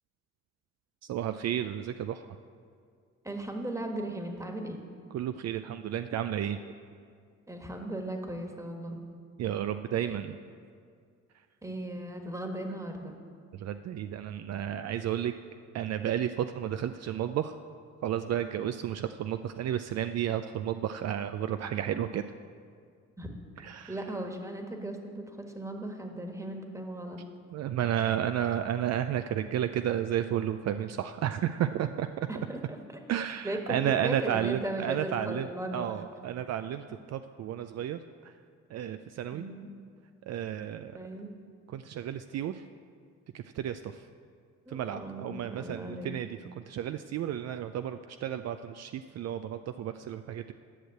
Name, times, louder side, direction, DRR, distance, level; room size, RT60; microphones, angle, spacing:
voice 1, 1.1-2.3 5.1-6.7 9.4-10.3 13.5-15.3 15.7-17.6 18.0-22.2 23.6-23.9 27.5-32.3 33.1-35.5 35.7-38.0 38.7-39.4 40.3-40.9 41.7-42.6 43.3-44.0 44.7-46.3 46.6-50.5, right 10 dB, 60° right, 9 dB, 0.4 m, -32 dB
voice 2, 3.2-4.9 7.5-9.0 10.1-10.2 11.6-13.2 23.2-23.3 23.9-27.2 32.3-32.8 33.4-35.9 39.3-39.7 40.9-41.3 44.6-46.1, right 1 dB, 10° right, 3 dB, 1.5 m, -37 dB
11.0 x 6.4 x 7.9 m, 2.2 s
cardioid pair, 90°, 30 cm